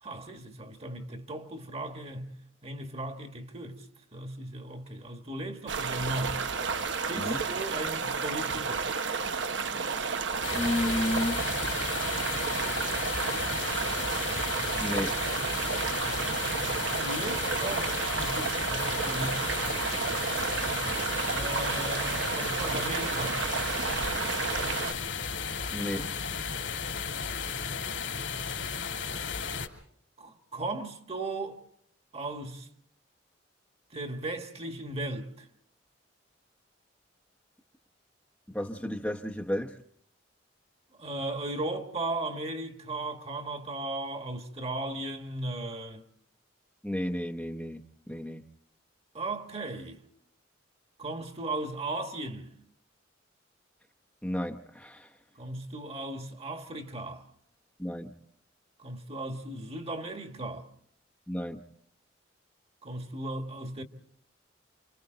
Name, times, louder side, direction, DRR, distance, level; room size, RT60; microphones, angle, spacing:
voice 1, 0.0-2.3 2.6-3.8 4.1-6.4 7.1-8.8 17.0-19.9 21.3-23.4 30.2-31.6 32.1-32.7 33.9-35.5 41.0-46.0 49.1-50.0 51.0-52.6 55.4-57.2 58.8-60.7 62.8-63.8, right 2 dB, 30° right, 1.7 m, -36 dB
sound 1, 5.7-24.9, right 5 dB, 70° right, 1.1 m, -31 dB
sound 2, 10.4-29.7, left 6 dB, 75° left, 2.8 m, -34 dB
voice 2, 10.5-11.4 14.8-15.2 25.7-26.1 38.5-39.8 46.8-47.8 48.1-48.4 54.2-55.1 57.8-58.1 61.3-61.6, left 1 dB, 5° left, 0.9 m, -32 dB
29.5 x 26.0 x 3.9 m
head